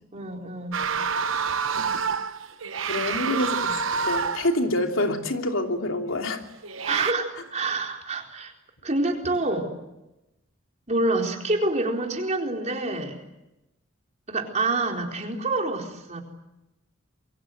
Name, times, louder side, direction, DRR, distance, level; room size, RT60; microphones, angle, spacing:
voice 1, 0.1-0.8 2.9-3.7 6.8-8.5 8.8-9.7 10.9-13.2 14.3-16.2, right 2 dB, 35° right, 2 dB, 4.2 m, -27 dB
sound 1, 0.7-4.6 6.6-7.1, right 6 dB, 75° right, 1.1 m, -27 dB
voice 2, 2.9-3.6 4.0-6.4, left 1 dB, 80° left, 4 dB, 3.0 m, -26 dB
28.0 x 23.5 x 8.0 m, 0.95 s
head